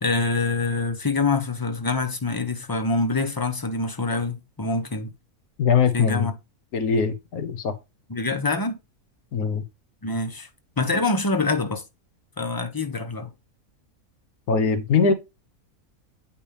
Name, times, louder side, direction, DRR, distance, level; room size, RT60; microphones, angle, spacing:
voice 1, 0.0-5.1 5.9-6.3 8.1-8.8 10.0-10.5 10.8-11.8 12.4-13.3, left 3 dB, 20° left, 0.7 m, -25 dB
voice 2, 5.6-6.3 6.7-7.7 9.3-9.6 14.5-15.1, left 5 dB, 85° left, 1.5 m, -21 dB
8.5 x 5.3 x 3.4 m
omnidirectional pair, 1.5 m